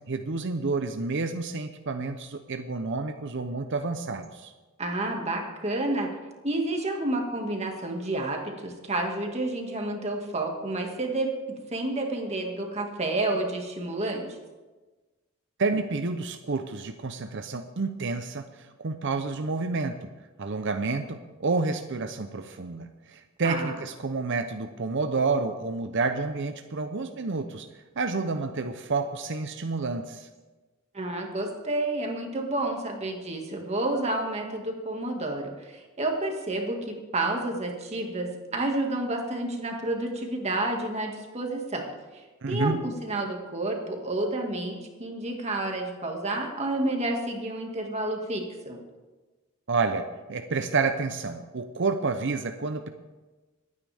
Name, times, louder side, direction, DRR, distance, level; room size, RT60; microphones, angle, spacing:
voice 1, 0.1-4.5 15.6-18.5 18.8-20.1 20.4-27.7 28.0-30.3 42.4-42.8 49.7-52.9, right 3 dB, 60° right, 7 dB, 0.7 m, -29 dB
voice 2, 4.8-6.1 6.4-14.3 23.4-23.8 30.9-41.8 42.1-48.8, right 2 dB, 30° right, 2 dB, 2.0 m, -30 dB
25.5 x 9.6 x 3.5 m, 1.2 s
head